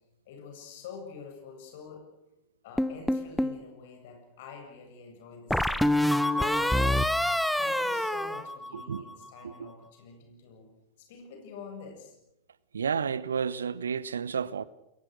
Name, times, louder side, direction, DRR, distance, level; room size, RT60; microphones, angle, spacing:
voice 1, 0.3-2.1 2.6-10.7 11.0-12.2, left 5 dB, 55° left, 7.7 m, -47 dB
sound 1, 2.8-3.6 5.5-9.1, left 1 dB, ahead, 1.1 m, -26 dB
voice 2, 8.7-9.0 9.4-9.7 12.7-14.6, right 6 dB, 70° right, 0.9 m, -31 dB
30.0 x 22.5 x 6.6 m
figure-of-eight pair, 90°, 0 cm